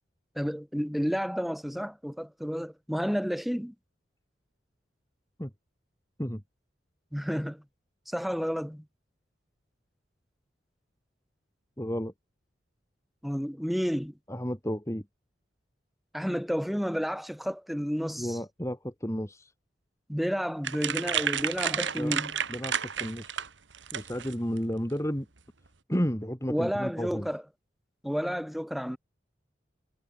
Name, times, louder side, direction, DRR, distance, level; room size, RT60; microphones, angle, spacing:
voice 1, 0.4-3.7 7.1-7.6 8.1-8.8 13.2-14.1 16.1-18.4 20.1-22.3 26.5-27.4 28.0-29.0, equal, ahead, 7.3 m, -31 dB
voice 2, 11.8-12.1 14.3-15.1 18.2-19.5 22.0-22.2 22.5-23.4 23.9-25.3 25.9-27.3, equal, 15° left, 4.5 m, -32 dB
sound 1, 20.6-24.6, right 8 dB, 80° right, 1.9 m, -31 dB
head